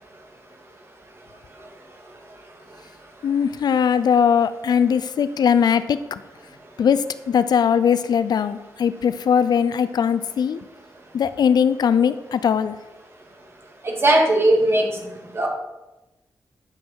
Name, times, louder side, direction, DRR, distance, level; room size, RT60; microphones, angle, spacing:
voice 1, 3.2-6.2 6.8-10.6 11.1-12.8, left 7 dB, 75° left, 14 dB, 0.5 m, -20 dB
voice 2, 13.8-14.9 15.3-15.5, right 1 dB, 35° right, 0 dB, 2.5 m, -18 dB
9.7 x 7.4 x 4.6 m, 1.0 s
cardioid pair, 75°, 7 cm